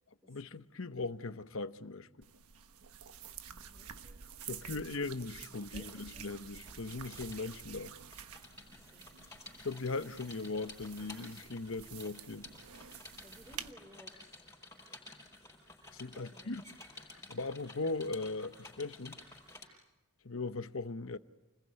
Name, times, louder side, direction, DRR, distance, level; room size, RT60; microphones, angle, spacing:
voice 1, 0.3-2.3 4.4-7.9 9.6-12.5 15.9-16.6 17.3-19.2 20.2-21.2, left 3 dB, 65° left, 0.9 m, -39 dB
sound 1, 2.2-13.7, right 8 dB, 85° right, 1.3 m, -50 dB
voice 2, 3.5-4.2 4.6-5.0 5.5-6.2 8.6-9.1 13.2-14.5 14.8-14.9 16.1-16.5, equal, 15° right, 4.0 m, -59 dB
sound 2, 5.0-19.7, left 2 dB, 10° left, 5.8 m, -54 dB
29.5 x 21.0 x 9.6 m
head